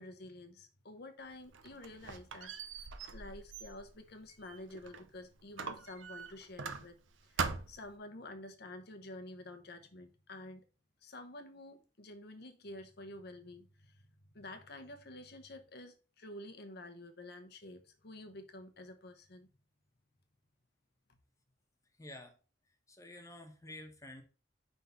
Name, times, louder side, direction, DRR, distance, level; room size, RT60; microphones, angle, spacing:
voice 1, 0.0-10.7 11.0-14.0 14.3-19.5, left 1 dB, 55° left, 0.9 m, -50 dB
Squeak, 1.3-5.1 5.6-7.1 7.4-7.9, right 5 dB, 80° right, 0.7 m, -42 dB
voice 2, 22.0-22.4 22.9-24.2, left 1 dB, 15° left, 1.1 m, -50 dB
5.5 x 3.7 x 5.6 m
head